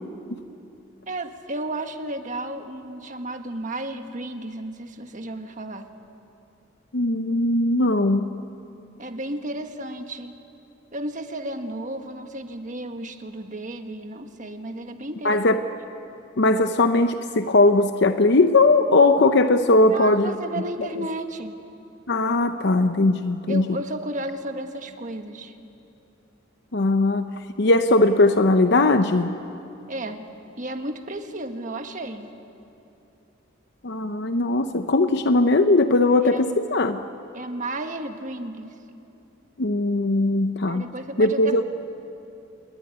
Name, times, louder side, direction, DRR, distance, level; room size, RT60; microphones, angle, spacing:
voice 1, 1.1-5.9 9.0-10.4 10.9-15.4 19.9-21.5 23.5-25.5 29.9-30.3 30.6-32.3 36.3-36.6 37.3-38.7 40.7-41.6, right 1 dB, 40° right, 6 dB, 1.6 m, -33 dB
voice 2, 6.9-8.3 15.2-15.6 16.4-20.3 22.1-23.7 26.7-27.3 27.6-29.4 33.8-37.0 39.6-40.9 41.2-41.6, left 2 dB, 60° left, 8 dB, 0.8 m, -19 dB
27.5 x 21.0 x 9.8 m, 2.8 s
head